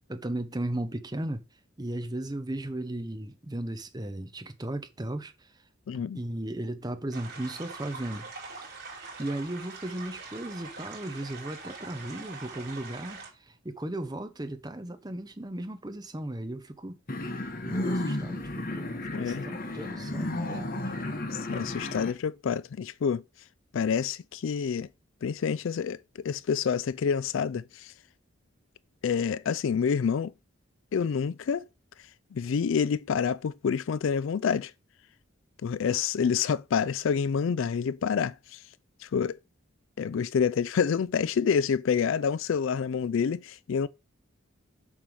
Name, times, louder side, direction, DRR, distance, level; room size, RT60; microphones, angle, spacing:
voice 1, 0.1-1.4 1.8-5.5 5.9-8.7 9.2-17.0 17.7-20.9, right 1 dB, 20° right, 0.7 m, -36 dB
voice 2, 5.9-6.2 19.1-19.5 21.5-23.2 23.7-24.9 25.2-27.9 29.0-30.3 30.9-31.6 32.3-34.7 35.6-38.6 39.0-39.4 40.0-43.9, left 6 dB, 70° left, 0.4 m, -28 dB
sound 1, 7.1-13.3, right 4 dB, 45° right, 3.8 m, -43 dB
sound 2, 17.1-22.1, left 1 dB, 40° left, 1.0 m, -33 dB
7.2 x 3.4 x 6.2 m
head